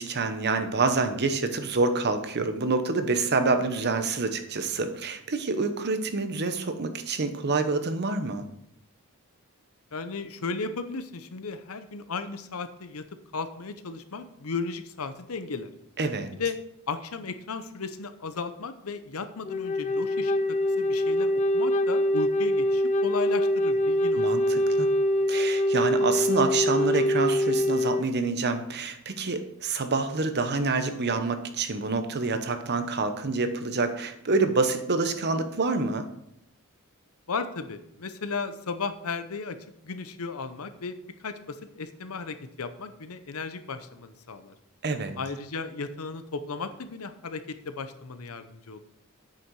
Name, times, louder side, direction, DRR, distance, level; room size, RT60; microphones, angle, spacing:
voice 1, 0.0-8.5 16.0-16.3 24.2-24.9 25.3-36.1 44.8-45.1, right 3 dB, 50° right, 9 dB, 0.9 m, -27 dB
voice 2, 9.9-13.0 13.3-15.7 16.4-16.6 16.9-24.3 37.3-39.6 39.8-44.5 45.2-48.8, left 4 dB, 80° left, 10 dB, 0.8 m, -35 dB
Wind instrument woodwind instrument, 19.4-28.1, left 1 dB, 35° left, 0.5 m, -24 dB
8.6 x 6.5 x 4.7 m, 0.76 s
head